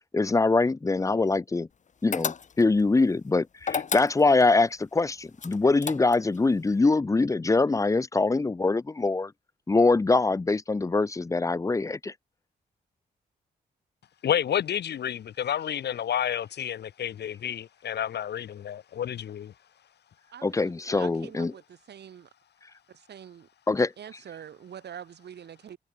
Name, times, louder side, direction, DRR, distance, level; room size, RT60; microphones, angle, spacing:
voice 1, 0.1-1.7 2.0-9.3 9.7-12.1 20.4-21.5 23.7-23.9, left 3 dB, 20° left, 1.0 m, -23 dB
sound 1, 2.1-2.8 3.6-4.5 5.4-6.4, left 6 dB, 45° left, 4.8 m, -32 dB
voice 2, 14.2-19.5, left 9 dB, 80° left, 1.7 m, -30 dB
voice 3, 20.3-21.6 21.9-22.3 23.1-23.5 24.0-25.8, right 9 dB, 75° right, 6.3 m, -44 dB
wide cardioid pair, 175°, 17 cm